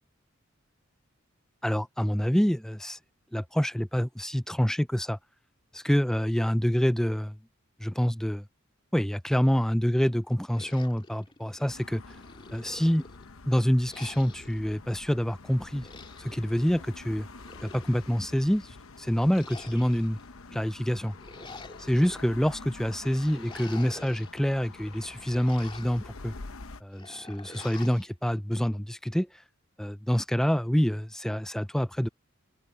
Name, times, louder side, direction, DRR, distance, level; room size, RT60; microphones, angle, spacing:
voice 1, 1.6-3.0 3.3-5.2 5.8-7.4 7.8-8.4 8.9-12.0 12.5-13.0 13.5-15.9 16.2-17.3 17.6-20.2 20.5-21.1 21.8-26.3 26.8-29.3 29.8-32.1, equal, ahead, 0.4 m, -27 dB
sound 1, 10.5-11.7 12.1-13.3 13.9-14.6 15.6-16.4 17.2-18.2 19.2-20.2 21.0-22.2 23.1-24.3 24.7-26.1 26.9-28.1, left 3 dB, 25° left, 2.9 m, -48 dB
sound 2, 11.7-26.8, left 3 dB, 80° left, 1.0 m, -47 dB
open air
head